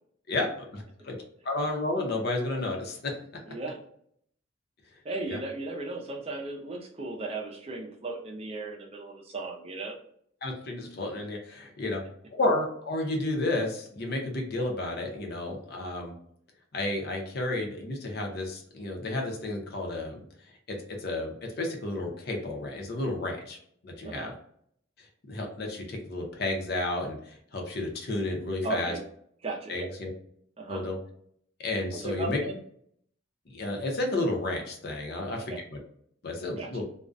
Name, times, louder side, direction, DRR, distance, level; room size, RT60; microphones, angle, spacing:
voice 1, 0.3-1.1 1.4-3.1 5.3-5.4 10.4-12.0 12.3-16.1 16.7-20.2 20.7-23.6 23.8-24.3 25.0-28.9 29.7-30.1 30.7-31.0 31.6-32.4 33.5-35.8 36.2-36.8, left 2 dB, 50° left, 1 dB, 0.6 m, -32 dB
voice 2, 3.5-3.8 5.0-10.0 11.8-11.9 24.0-24.3 28.6-29.0 29.4-29.9 30.6-30.8 31.9-32.6 35.3-35.6 36.6-36.8, right 2 dB, 30° right, 0 dB, 0.5 m, -36 dB
2.4 x 2.1 x 2.4 m, 0.66 s
head